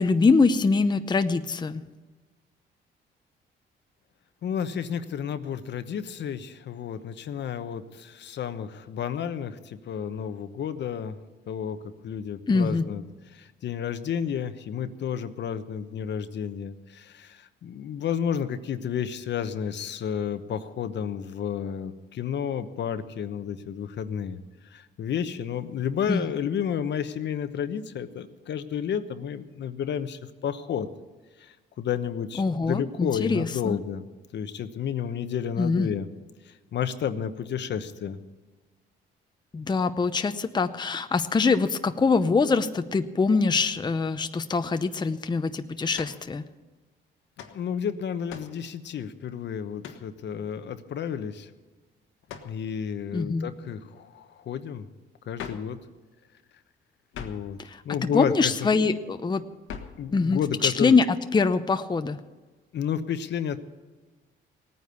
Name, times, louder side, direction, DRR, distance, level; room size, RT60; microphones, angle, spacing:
voice 1, 0.0-1.9 12.5-12.9 26.1-26.3 32.4-33.8 35.6-35.9 39.5-46.5 53.1-53.5 57.6-59.4 60.1-62.2, left 4 dB, 20° left, 9 dB, 0.7 m, -24 dB
voice 2, 4.4-11.2 11.5-11.8 12.0-13.0 13.3-24.4 24.7-30.9 31.4-34.0 34.3-36.1 36.5-38.2 47.5-51.5 52.4-54.9 55.3-55.8 57.2-57.6 57.8-58.9 60.0-60.9 62.7-63.6, left 8 dB, 65° left, 10 dB, 1.0 m, -31 dB
sound 1, 45.9-46.3 47.4-47.6 48.3-48.6 49.8-50.1 52.3-52.6 55.4-55.7 57.1-57.5 59.7-60.0, left 7 dB, 85° left, 1.5 m, -40 dB
17.5 x 9.6 x 6.9 m, 1.3 s
cardioid pair, 90°, 20 cm